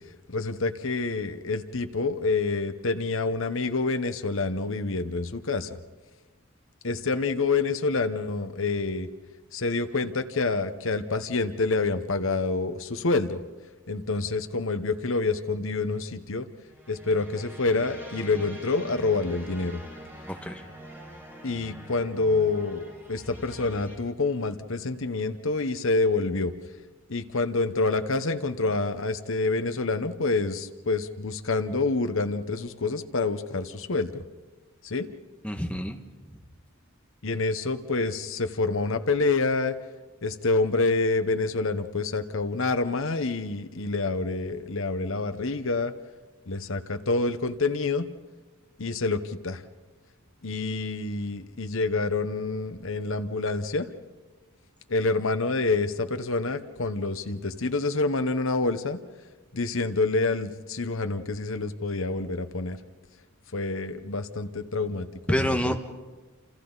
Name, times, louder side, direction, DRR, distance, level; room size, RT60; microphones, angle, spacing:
voice 1, 0.3-5.8 6.8-9.1 9.5-13.4 13.9-16.5 16.9-19.8 21.4-26.5 27.1-34.2 34.8-35.1 37.2-39.7 40.2-45.9 46.5-48.1 48.8-49.6 50.4-53.9 54.9-59.0 59.5-62.8 63.5-65.7, left 3 dB, 65° left, 10 dB, 1.1 m, -27 dB
sound 1, 16.7-24.0, right 1 dB, 10° right, 5.3 m, -44 dB
voice 2, 20.3-20.6 35.4-36.3 65.3-65.8, equal, 5° left, 3 dB, 1.6 m, -28 dB
29.5 x 27.5 x 4.1 m, 1.3 s
head